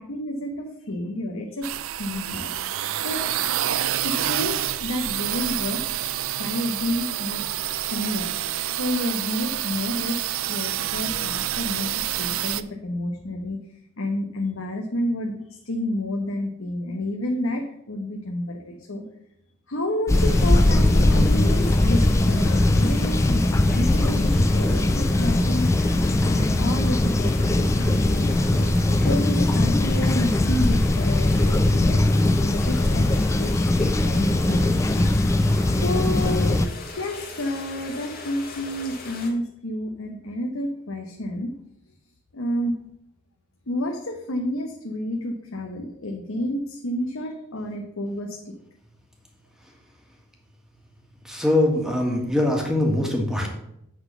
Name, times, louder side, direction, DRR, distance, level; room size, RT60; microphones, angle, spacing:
voice 1, 0.0-2.5 3.0-3.3 4.0-5.8 6.4-7.4 7.9-13.6 14.0-19.0 19.7-25.7 26.2-32.0 32.4-33.1 33.4-35.2 35.7-41.5 42.3-42.7 43.7-48.5, left 1 dB, 70° left, 2 dB, 1.0 m, -30 dB
sound 1, 1.6-12.6, right 12 dB, 70° right, 0.4 m, -28 dB
sound 2, 20.1-39.3, left 3 dB, 45° left, 1.8 m, -39 dB
sound 3, 20.1-36.7, left 1 dB, 15° left, 0.3 m, -20 dB
voice 2, 51.2-53.5, left 1 dB, 5° right, 1 dB, 1.6 m, -22 dB
8.7 x 4.0 x 6.8 m, 0.78 s
head